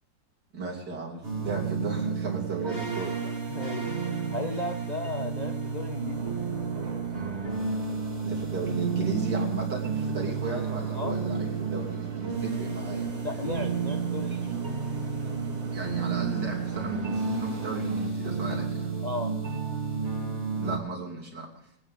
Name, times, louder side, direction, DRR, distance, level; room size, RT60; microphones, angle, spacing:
voice 1, 0.5-3.6 8.2-13.1 14.3-14.4 15.7-18.9 20.5-21.5, right 3 dB, 60° right, -2 dB, 3.6 m, -35 dB
sound 1, 1.2-20.8, right 5 dB, 35° right, 2.9 m, -31 dB
voice 2, 3.5-6.3 10.9-11.2 13.2-14.6 19.0-19.3, left 2 dB, 35° left, 2 dB, 0.7 m, -35 dB
sound 2, 5.2-18.1, right 4 dB, 85° right, 2.7 m, -44 dB
23.5 x 9.6 x 3.7 m, 0.73 s
omnidirectional pair, 2.1 m